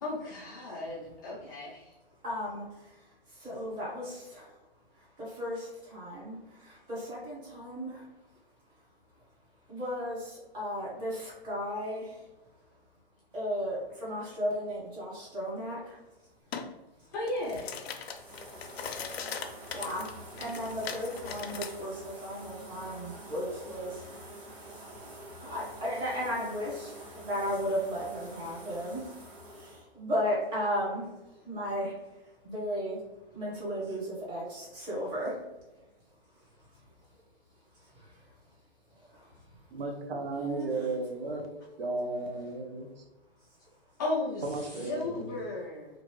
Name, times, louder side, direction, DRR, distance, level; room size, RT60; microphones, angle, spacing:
voice 1, 0.0-1.9 17.1-17.6 44.0-45.9, left 2 dB, 20° left, -7 dB, 0.3 m, -35 dB
voice 2, 2.2-2.6 3.4-4.1 5.4-5.6 5.9-6.4 6.9-8.0 9.7-12.2 13.3-15.8 19.7-24.0 25.4-26.9 27.3-29.0 29.6-31.1 31.4-31.9 32.4-33.0 33.3-35.4 40.4-40.7 42.4-42.5, equal, 15° right, -6 dB, 1.0 m, -34 dB
sound 1, 16.5-16.7 17.1-21.7, left 6 dB, 80° left, 0.5 m, -40 dB
sound 2, 18.0-29.8, right 1 dB, 35° right, 1.2 m, -47 dB
voice 3, 39.7-41.5 41.8-42.9 44.4-45.3, right 2 dB, 70° right, 3 dB, 0.7 m, -34 dB
2.7 x 2.5 x 2.9 m, 1.0 s
hypercardioid pair, 150°, 31 cm